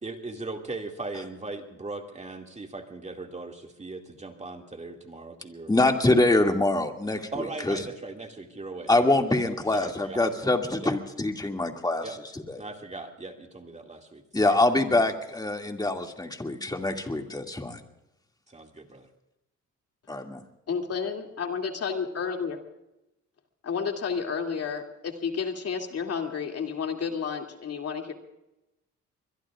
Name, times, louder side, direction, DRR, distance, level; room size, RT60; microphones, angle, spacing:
voice 1, 0.0-5.8 6.1-6.4 7.3-10.2 10.8-10.9 12.0-12.1 12.6-14.6 18.5-19.1, right 3 dB, 25° right, 3 dB, 2.3 m, -39 dB
voice 2, 5.7-7.3 7.7-7.8 8.9-12.1 12.5-12.6 14.3-17.8, left 2 dB, 15° left, 3 dB, 2.3 m, -24 dB
voice 3, 20.7-22.6 23.6-28.1, left 6 dB, 55° left, 3 dB, 2.6 m, -31 dB
24.0 x 22.0 x 2.5 m, 0.92 s
cardioid pair, 90°, 30 cm